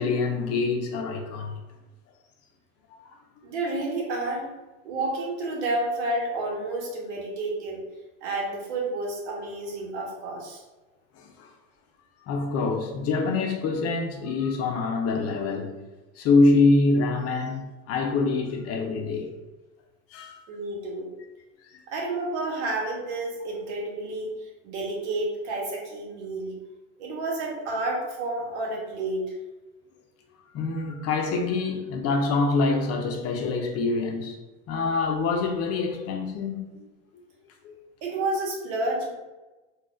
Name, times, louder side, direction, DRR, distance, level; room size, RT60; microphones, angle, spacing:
voice 1, 0.0-1.6 11.2-11.5 12.3-15.8 16.2-19.3 20.1-20.4 21.7-21.8 30.5-34.4 34.7-36.9 37.6-37.8, left 3 dB, 45° left, 0.6 m, -25 dB
voice 2, 3.4-4.5 4.8-7.8 8.2-10.6 20.5-21.1 21.9-26.6 27.0-29.4 38.0-39.1, right 2 dB, 80° right, 1.0 m, -30 dB
3.8 x 2.3 x 2.4 m
supercardioid pair, 105°, 34 cm